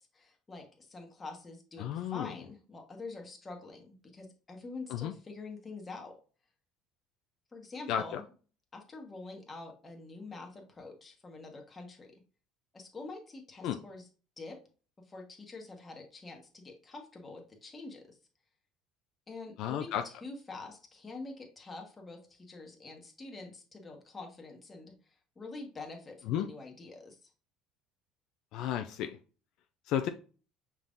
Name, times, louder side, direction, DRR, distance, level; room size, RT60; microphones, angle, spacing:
voice 1, 0.0-6.2 7.5-8.3 8.7-12.2 12.7-14.1 14.4-14.6 15.1-18.2 19.3-27.3, left 3 dB, 20° left, 2 dB, 1.1 m, -46 dB
voice 2, 1.8-2.3 4.9-5.1 7.9-8.2 13.6-13.8 19.6-20.0 26.3-26.5 28.5-29.2 29.9-30.1, left 10 dB, 65° left, 7 dB, 0.4 m, -32 dB
5.6 x 3.5 x 2.5 m, 0.38 s
cardioid pair, 130°, 0 cm